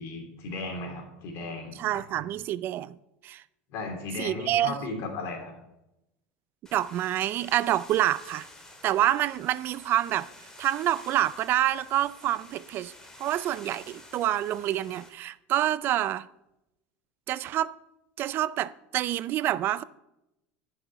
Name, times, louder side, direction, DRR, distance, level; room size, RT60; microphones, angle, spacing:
voice 1, 0.0-2.0 3.7-5.5, left 3 dB, 60° left, 3.2 m, -36 dB
voice 2, 1.8-3.0 3.2-3.4 4.2-4.8 6.7-8.5 8.8-10.3 10.6-12.9 13.2-16.3 17.3-17.7 18.2-19.8, right 13 dB, 45° right, 0.4 m, -27 dB
sound 1, 6.7-15.1, left 2 dB, 10° left, 2.1 m, -50 dB
10.5 x 6.3 x 5.7 m
supercardioid pair, 105°, 5 cm